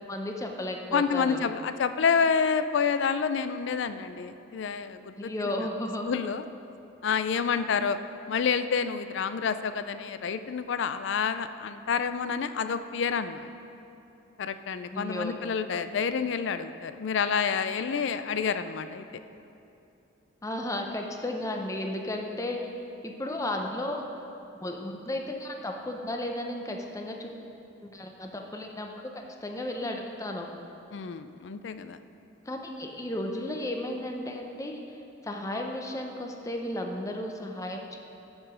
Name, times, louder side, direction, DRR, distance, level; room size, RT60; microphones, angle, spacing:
voice 1, 0.1-1.4 5.2-6.1 14.9-15.4 20.4-22.6 23.0-24.0 24.6-27.4 27.8-29.1 29.4-30.5 32.5-35.0 35.2-38.0, left 1 dB, 15° left, 2 dB, 0.6 m, -34 dB
voice 2, 0.9-5.5 6.1-6.4 7.0-8.0 8.3-13.5 14.4-19.1 30.9-32.0, left 6 dB, 60° left, 11 dB, 0.4 m, -28 dB
13.0 x 4.8 x 4.9 m, 2.7 s
head